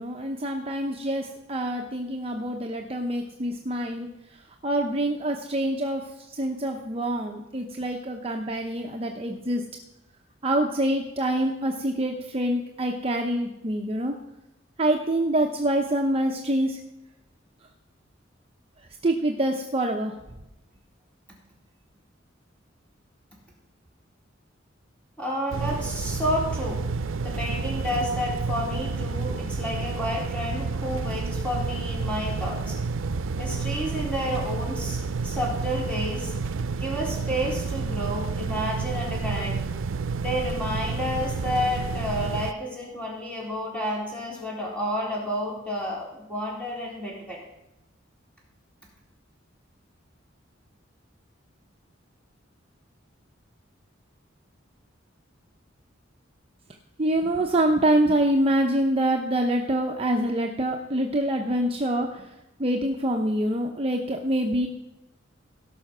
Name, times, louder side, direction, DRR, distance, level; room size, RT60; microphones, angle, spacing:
voice 1, 0.0-9.6 10.4-14.2 14.8-16.8 19.0-20.1 57.0-64.7, right 1 dB, 30° right, 2 dB, 0.8 m, -26 dB
voice 2, 25.2-26.9 27.2-32.8 33.4-36.3 36.8-39.6 40.2-47.4, equal, 5° left, -4 dB, 3.8 m, -30 dB
sound 1, 25.5-42.5, right 4 dB, 85° right, 0.5 m, -30 dB
17.0 x 5.8 x 6.1 m, 0.93 s
head